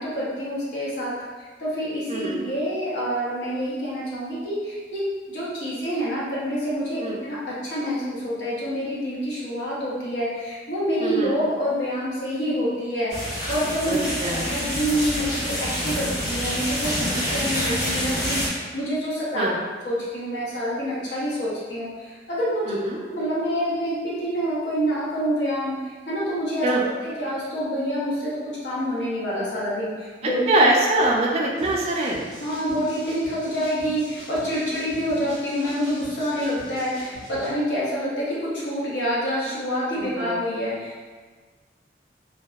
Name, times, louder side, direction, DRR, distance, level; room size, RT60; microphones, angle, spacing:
voice 1, 0.0-19.4 19.8-22.8 23.0-30.6 32.4-41.1, equal, 85° left, -7 dB, 0.8 m, -27 dB
voice 2, 11.0-11.3 13.9-14.4 19.3-19.5 22.7-23.0 26.6-26.8 30.5-32.2 40.0-40.3, right 2 dB, 35° right, -3 dB, 0.3 m, -23 dB
sound 1, 13.1-18.5, equal, 65° left, 1.1 m, -27 dB
sound 2, 31.6-37.5, equal, 5° left, 0.8 m, -43 dB
2.6 x 2.2 x 2.2 m, 1.4 s
head